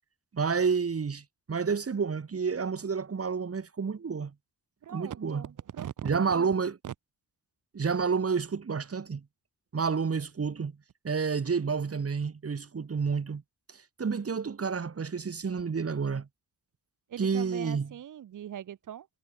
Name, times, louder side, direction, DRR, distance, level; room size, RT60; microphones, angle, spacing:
voice 1, 0.3-4.3 4.9-5.4 6.0-6.8 7.7-9.2 9.7-10.7 11.0-13.4 14.0-16.3 17.2-17.9, right 5 dB, 40° right, 1.3 m, -29 dB
voice 2, 4.8-6.5 6.8-6.9 17.1-19.1, right 10 dB, 55° right, 0.5 m, -40 dB
wide cardioid pair, 105°, 38 cm